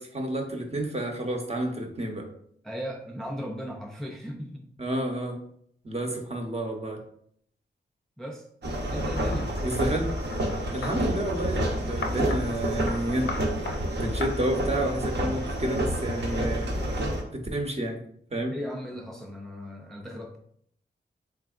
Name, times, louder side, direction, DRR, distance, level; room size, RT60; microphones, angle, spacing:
voice 1, 0.0-2.2 4.8-5.4 5.8-7.0 9.6-10.1 10.7-13.3 14.0-18.0 18.3-18.5, right 1 dB, 35° right, 2 dB, 0.7 m, -30 dB
voice 2, 2.6-4.7 8.2-8.5 8.9-9.5 18.5-20.4, equal, ahead, 1 dB, 0.4 m, -36 dB
sound 1, 8.6-17.2, right 1 dB, 65° right, 0.8 m, -29 dB
sound 2, 9.2-11.0 12.0-12.4 12.9-13.0 13.3-13.8 14.2-14.3, left 3 dB, 90° left, 0.5 m, -36 dB
3.6 x 3.4 x 2.4 m, 0.67 s
wide cardioid pair, 85°, 19 cm